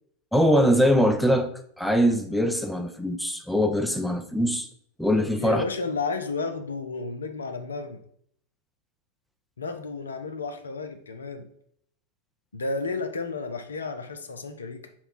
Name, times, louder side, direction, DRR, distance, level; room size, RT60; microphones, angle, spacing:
voice 1, 0.3-1.5 1.8-4.7 5.0-5.6, equal, ahead, 0.4 m, -22 dB
voice 2, 5.4-8.0 9.6-11.5 12.5-14.9, left 3 dB, 70° left, 0.5 m, -32 dB
5.6 x 2.2 x 4.2 m
figure-of-eight pair, 90°, 0 cm